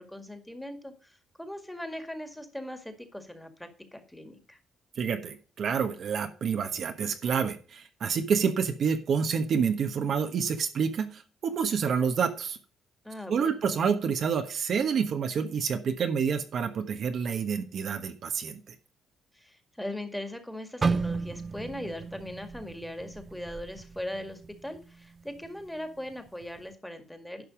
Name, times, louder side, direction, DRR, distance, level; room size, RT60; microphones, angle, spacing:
voice 1, 0.0-4.6 13.0-13.6 19.3-27.4, left 1 dB, 5° left, 7 dB, 1.9 m, -40 dB
voice 2, 5.0-12.6 13.3-18.6, right 6 dB, 60° right, 7 dB, 1.2 m, -28 dB
sound 1, 20.8-24.8 25.2-25.5 26.1-26.4, right 4 dB, 35° right, 0.4 m, -33 dB
11.0 x 5.5 x 5.1 m, 0.38 s
cardioid pair, 90°, 0 cm